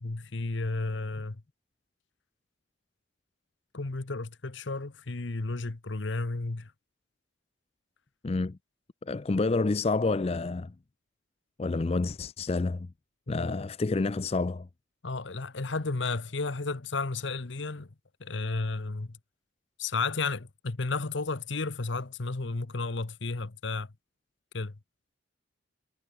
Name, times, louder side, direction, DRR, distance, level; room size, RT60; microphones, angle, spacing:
voice 1, 0.0-1.4 3.7-6.7 13.3-13.6 15.0-17.9 18.2-19.2 19.8-23.9 24.5-24.8, left 3 dB, 65° left, 1.0 m, -33 dB
voice 2, 8.2-8.6 9.0-10.7 11.6-12.9 13.3-14.7, left 3 dB, 30° left, 0.4 m, -28 dB
head